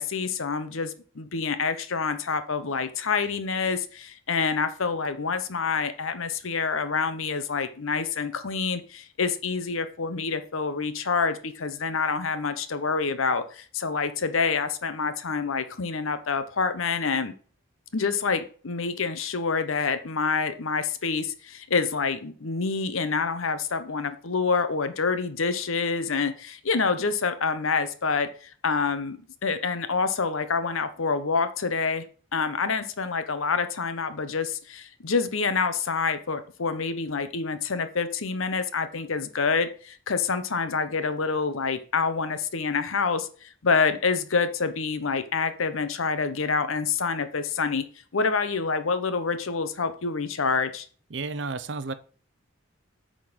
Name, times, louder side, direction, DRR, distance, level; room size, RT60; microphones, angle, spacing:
voice 1, 0.0-17.3 17.9-32.1 32.3-47.9 48.1-50.9, left 5 dB, 75° left, 11 dB, 0.8 m, -27 dB
voice 2, 51.1-51.9, right 3 dB, 55° right, 14 dB, 0.6 m, -32 dB
8.6 x 3.9 x 6.1 m, 0.43 s
head